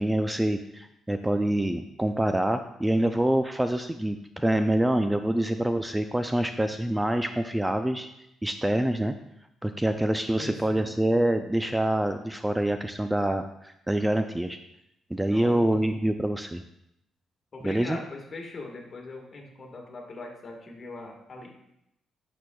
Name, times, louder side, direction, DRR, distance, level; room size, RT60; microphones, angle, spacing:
voice 1, 0.0-8.1 8.4-9.1 9.6-14.6 15.1-16.6 17.6-18.0, right 1 dB, 10° right, 8 dB, 0.3 m, -26 dB
voice 2, 10.4-10.9 15.3-15.8 17.5-21.5, left 2 dB, 45° left, 1 dB, 1.5 m, -41 dB
8.2 x 6.2 x 2.3 m, 0.81 s
cardioid pair, 90°, 0 cm